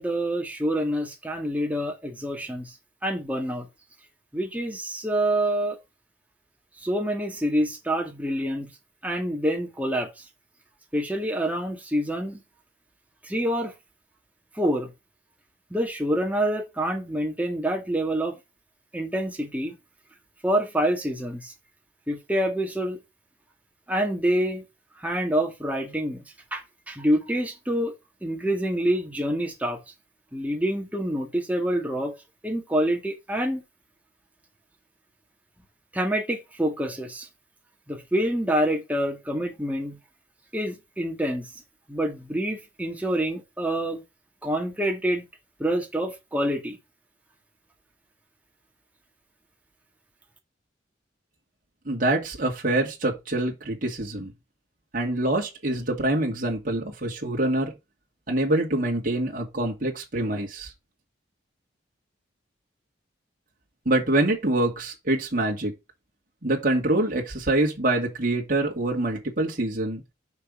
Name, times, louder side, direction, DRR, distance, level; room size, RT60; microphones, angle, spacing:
voice 1, 0.0-2.8 3.0-3.7 4.3-5.8 6.8-8.7 9.0-10.2 10.9-12.4 13.2-13.7 14.5-14.9 15.7-18.4 18.9-19.8 20.4-21.5 22.1-23.0 23.9-24.6 25.0-26.2 26.5-27.9 28.2-29.8 30.3-32.1 32.4-33.6 35.9-37.3 37.9-40.0 40.5-41.5 41.9-44.0 44.4-45.2 45.6-46.8, right 1 dB, 10° right, 2.0 m, -27 dB
voice 2, 51.9-54.3 54.9-57.7 58.3-60.7 63.9-65.7 66.4-70.0, right 1 dB, 45° right, 2.4 m, -25 dB
6.5 x 5.6 x 5.0 m
head